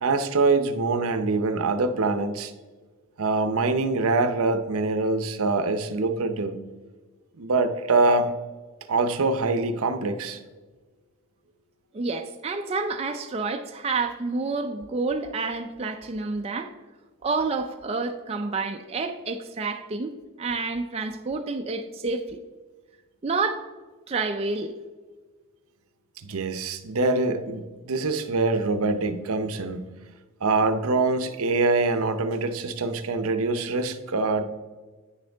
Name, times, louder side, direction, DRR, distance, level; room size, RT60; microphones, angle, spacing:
voice 1, 0.0-2.5 3.2-6.6 7.4-8.3 8.9-10.4 26.2-29.8 30.4-34.4, right 3 dB, 70° right, 9 dB, 0.6 m, -24 dB
voice 2, 11.9-16.7 17.2-20.1 20.4-22.4 23.2-23.6 24.1-24.7, right 3 dB, 25° right, 4 dB, 0.4 m, -29 dB
9.4 x 6.3 x 3.4 m, 1.3 s
head